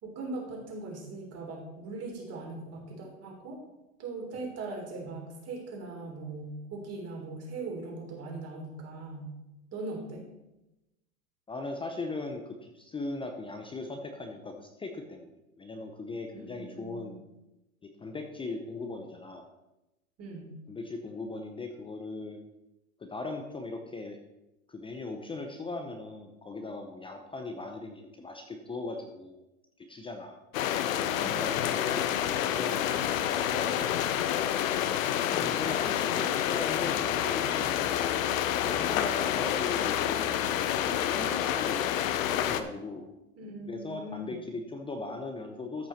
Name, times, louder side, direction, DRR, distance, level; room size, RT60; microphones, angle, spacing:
voice 1, 0.0-3.6 4.0-9.3 9.7-10.3 16.3-17.2 20.2-20.5 31.2-31.5 35.3-35.6 43.4-44.4, right 3 dB, 35° right, 0 dB, 3.3 m, -40 dB
voice 2, 11.5-17.2 17.8-19.4 20.7-22.4 23.0-24.2 24.7-29.4 29.8-30.4 31.0-32.9 33.2-34.5 35.4-38.0 38.6-43.0 43.7-45.9, left 3 dB, 10° left, 4 dB, 0.8 m, -39 dB
sound 1, 30.5-42.6, left 10 dB, 65° left, 0.9 m, -28 dB
13.5 x 5.5 x 4.4 m, 0.96 s
hypercardioid pair, 110°, 43 cm